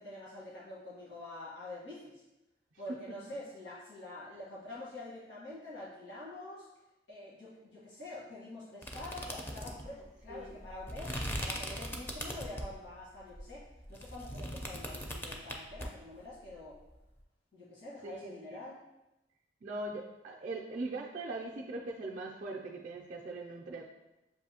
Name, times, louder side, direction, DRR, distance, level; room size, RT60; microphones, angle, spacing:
voice 1, 0.0-2.2 2.8-6.7 7.1-16.8 17.5-18.8, left 2 dB, 70° left, -8 dB, 1.5 m, -46 dB
sound 1, 8.8-12.8 13.3-15.9, equal, 10° left, 0.4 m, -40 dB
voice 2, 18.0-18.6 19.6-23.9, right 2 dB, 45° right, -3 dB, 0.4 m, -41 dB
6.8 x 2.6 x 2.8 m, 0.98 s
head